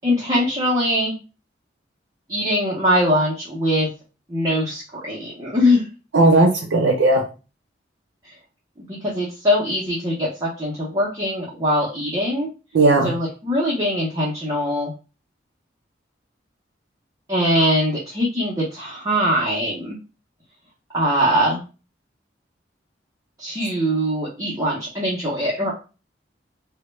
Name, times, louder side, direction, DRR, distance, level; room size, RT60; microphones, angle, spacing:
voice 1, 0.0-1.1 2.3-3.9 4.3-5.9 8.9-12.5 13.0-14.9 17.3-20.0 20.9-21.6 23.4-25.7, equal, 20° right, -6 dB, 0.6 m, -22 dB
voice 2, 6.1-7.2 12.7-13.1, right 2 dB, 85° right, 0 dB, 0.5 m, -16 dB
2.1 x 2.1 x 3.1 m, 0.32 s
head